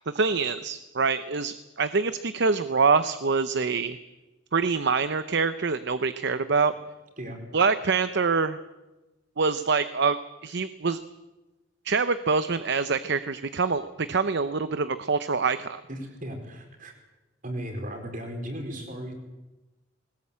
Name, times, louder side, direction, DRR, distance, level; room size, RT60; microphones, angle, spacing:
voice 1, 0.0-4.0 4.5-6.7 7.5-8.6 9.4-11.0 11.8-15.8, right 4 dB, 60° right, 12 dB, 0.8 m, -25 dB
voice 2, 15.9-16.9 17.4-19.1, equal, 45° right, 4 dB, 4.7 m, -36 dB
20.5 x 19.5 x 8.7 m, 1.1 s
head